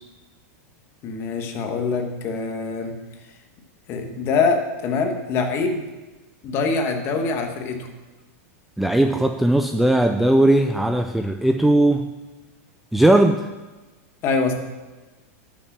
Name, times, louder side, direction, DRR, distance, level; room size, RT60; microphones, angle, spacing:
voice 1, 1.0-3.0 3.9-5.8 6.4-7.9 14.2-14.5, left 4 dB, 30° left, 5 dB, 1.4 m, -24 dB
voice 2, 8.8-12.1 12.9-13.5, right 1 dB, ahead, 6 dB, 0.3 m, -18 dB
12.0 x 6.3 x 6.1 m, 1.2 s
supercardioid pair, 160°, 8 cm